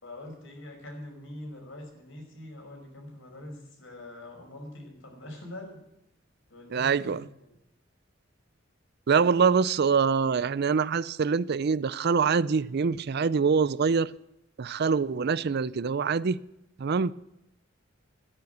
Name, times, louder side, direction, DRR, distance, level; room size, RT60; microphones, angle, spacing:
voice 1, 0.0-5.8 6.5-7.5, left 1 dB, 70° left, 5.4 m, -44 dB
voice 2, 6.7-7.3 9.1-14.1 14.6-16.4 16.8-17.1, right 5 dB, 55° right, 0.5 m, -24 dB
13.5 x 10.0 x 8.0 m
head